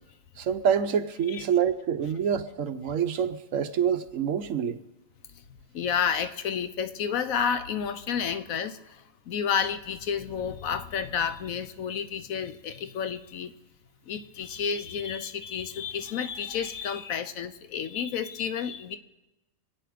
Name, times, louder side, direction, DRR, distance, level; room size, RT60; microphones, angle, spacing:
voice 1, 0.4-4.8, right 8 dB, 70° right, 1.2 m, -26 dB
voice 2, 5.7-13.5 14.1-19.0, left 7 dB, 85° left, 1.2 m, -30 dB
26.0 x 9.1 x 5.0 m
omnidirectional pair, 1.4 m